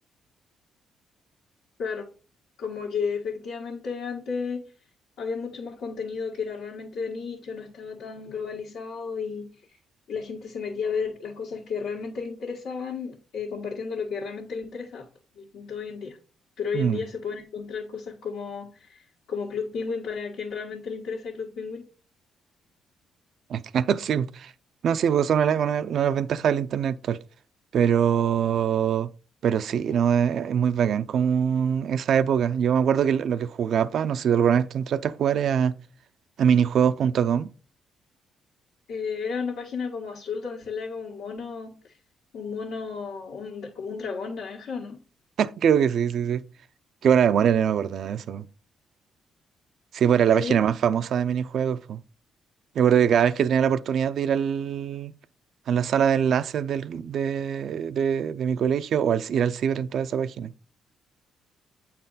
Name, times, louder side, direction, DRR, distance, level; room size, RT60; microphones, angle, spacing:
voice 1, 2.6-4.7 5.2-9.5 10.1-15.1 15.3-16.2 16.6-19.0 19.3-21.9 38.9-41.8 42.3-45.0 50.3-50.6, left 5 dB, 85° left, 1.7 m, -33 dB
voice 2, 23.5-24.5 24.8-27.2 27.7-29.1 29.4-35.8 36.4-37.5 45.4-46.4 47.0-48.5 49.9-52.0 52.8-55.1 55.7-60.5, right 8 dB, 65° right, 0.4 m, -23 dB
8.5 x 4.3 x 4.0 m
cardioid pair, 90°, 0 cm